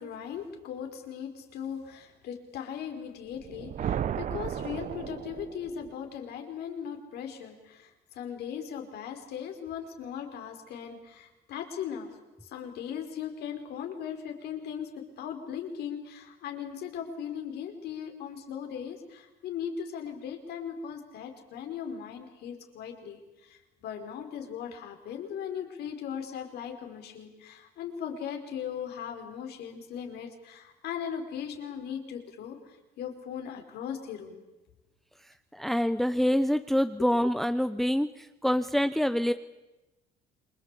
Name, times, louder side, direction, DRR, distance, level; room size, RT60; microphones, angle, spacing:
voice 1, 0.0-12.1 12.4-34.4, left 8 dB, 75° left, 4 dB, 4.7 m, -38 dB
sound 1, 3.3-5.9, right 9 dB, 50° right, 0.8 m, -34 dB
voice 2, 35.5-39.3, equal, ahead, 11 dB, 0.8 m, -26 dB
27.5 x 22.5 x 8.4 m, 1.0 s
cardioid pair, 110°, 17 cm